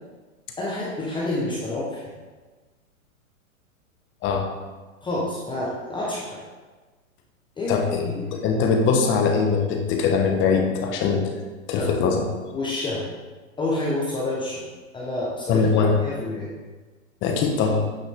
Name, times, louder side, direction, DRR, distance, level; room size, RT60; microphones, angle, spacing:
voice 1, 0.6-2.0 5.0-6.4 7.6-8.5 11.8-11.9 12.5-13.0 13.6-14.6 14.9-16.5, left 2 dB, 10° left, -6 dB, 1.2 m, -28 dB
voice 2, 7.7-8.1 8.3-11.3 11.7-12.2 15.5-16.0 17.2-17.8, left 5 dB, 30° left, 3 dB, 1.2 m, -21 dB
9.0 x 5.6 x 3.7 m, 1.3 s
hypercardioid pair, 125°, 41 cm